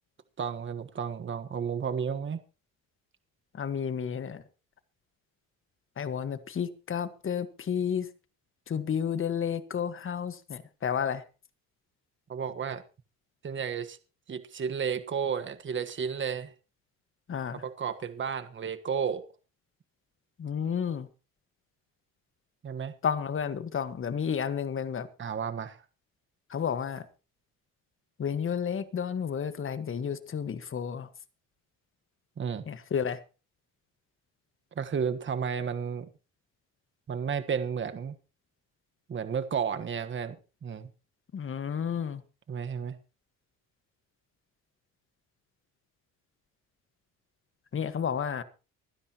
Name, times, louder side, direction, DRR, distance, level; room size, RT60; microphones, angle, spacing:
voice 1, 0.4-2.4 12.3-12.8 13.4-14.0 14.3-16.5 17.6-19.3 22.6-22.9 25.2-25.8 32.4-32.6 34.7-36.1 37.1-38.2 39.1-40.9 42.5-43.0, right 7 dB, 35° right, 1.4 m, -32 dB
voice 2, 3.5-4.4 6.0-8.1 8.7-11.2 17.3-17.6 20.4-21.1 23.0-25.1 26.5-27.1 28.2-31.1 32.7-33.2 41.3-42.2 47.7-48.4, left 7 dB, 40° left, 1.5 m, -31 dB
25.0 x 9.9 x 3.0 m
cardioid pair, 90°, 33 cm